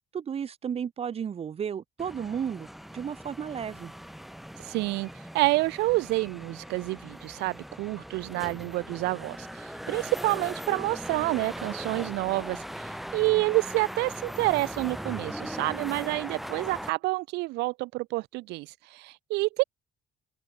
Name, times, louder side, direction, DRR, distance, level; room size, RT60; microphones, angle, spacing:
voice 1, 0.1-3.9, right 7 dB, 35° right, 0.9 m, -33 dB
sound 1, 2.0-16.9, equal, ahead, 2.2 m, -40 dB
voice 2, 4.6-5.1 5.3-19.6, right 22 dB, 90° right, 0.6 m, -28 dB
cardioid pair, 110°, 17 cm